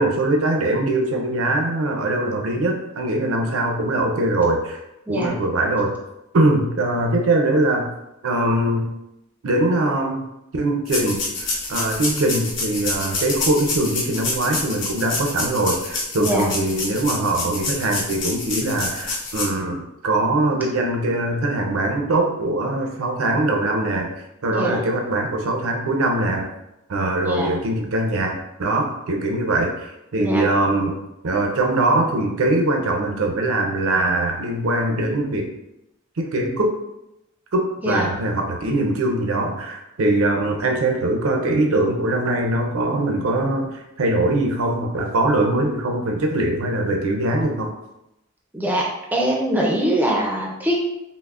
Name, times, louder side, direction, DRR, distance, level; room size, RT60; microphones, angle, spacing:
voice 1, 0.0-4.8 5.1-6.0 6.3-7.9 8.2-8.9 9.4-10.3 10.5-24.1 24.4-26.5 26.9-35.5 36.2-36.7 37.5-47.7, right 2 dB, 90° right, 1 dB, 0.6 m, -22 dB
voice 2, 5.1-5.4 16.2-16.5 24.5-24.9 27.2-27.5 30.2-30.5 37.8-38.1 48.5-50.8, right 1 dB, 10° right, -1 dB, 0.4 m, -23 dB
sound 1, 10.9-19.5, left 3 dB, 60° left, 0.9 m, -27 dB
5.6 x 2.0 x 2.4 m, 0.89 s
head